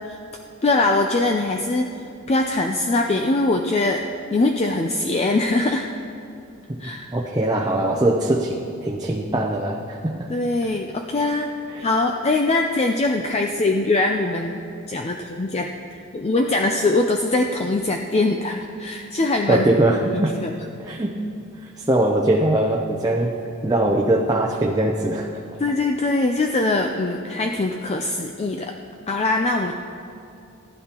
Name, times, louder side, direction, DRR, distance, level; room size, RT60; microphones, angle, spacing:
voice 1, 0.6-1.9 2.3-4.0 4.3-5.9 6.8-7.1 10.3-11.5 11.8-14.6 14.9-15.7 16.1-19.7 20.1-20.5 25.6-28.7 29.1-29.7, left 2 dB, 30° left, 3 dB, 0.4 m, -22 dB
voice 2, 7.1-10.3 11.7-11.9 19.5-20.3 20.8-21.1 21.8-23.4 23.6-25.4, right 1 dB, 20° right, -1 dB, 0.7 m, -21 dB
19.0 x 11.0 x 2.9 m, 2.6 s
head